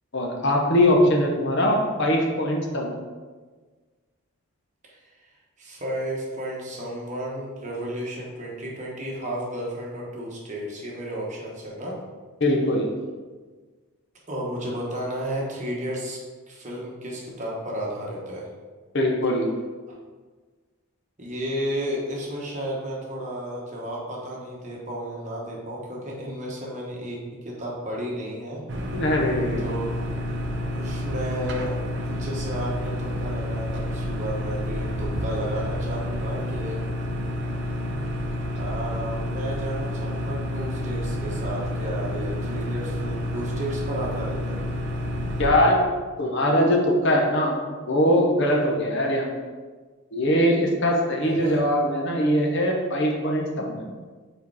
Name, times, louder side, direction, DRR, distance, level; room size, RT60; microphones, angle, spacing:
voice 1, 0.1-2.9 12.4-12.9 18.9-19.5 28.9-29.6 45.4-45.8 46.2-47.6 47.9-49.3 50.1-53.9, left 1 dB, 55° left, 0 dB, 0.9 m, -21 dB
voice 2, 5.6-12.0 14.3-16.2 16.5-18.4 21.2-28.6 29.6-29.9 30.7-31.7 32.1-36.8 38.5-44.6 51.0-51.6, equal, 35° right, -3 dB, 1.2 m, -33 dB
sound 1, 28.7-45.5, left 1 dB, 50° right, 0.7 m, -29 dB
4.8 x 4.4 x 4.8 m, 1.4 s
head